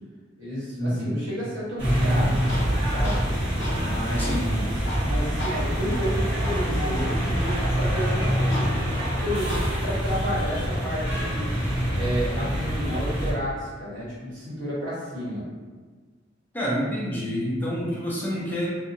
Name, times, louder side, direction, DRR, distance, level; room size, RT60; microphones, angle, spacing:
voice 1, 0.4-2.4 2.9-3.2 3.8-4.7 5.0-8.6 9.2-11.5 11.9-15.4, equal, 85° right, -9 dB, 1.3 m, -31 dB
sound 1, 1.8-13.3, equal, 30° right, 1.0 m, -25 dB
Tools, 2.0-10.0, equal, 75° left, 0.8 m, -38 dB
voice 2, 4.1-4.5 16.5-18.7, equal, 10° left, -7 dB, 0.5 m, -28 dB
2.7 x 2.2 x 2.6 m, 1.4 s
head